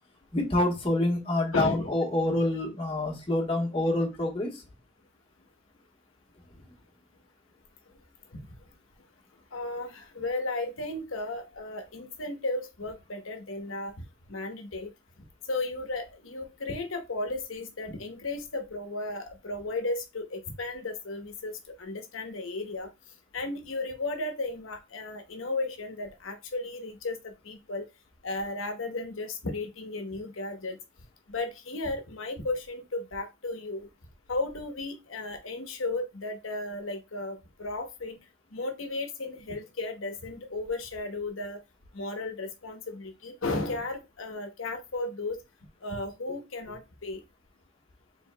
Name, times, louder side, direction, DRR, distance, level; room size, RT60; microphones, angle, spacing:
voice 1, 0.3-4.6, left 1 dB, 30° left, 0 dB, 1.3 m, -27 dB
voice 2, 1.5-1.9 8.3-8.4 9.5-13.9 14.3-14.9 15.5-21.5 21.8-22.9 23.3-27.8 28.2-30.8 31.3-33.9 34.3-38.2 38.5-41.6 41.9-45.4 45.8-47.2, left 2 dB, 80° left, 6 dB, 1.0 m, -34 dB
4.8 x 3.5 x 2.2 m, 0.25 s
head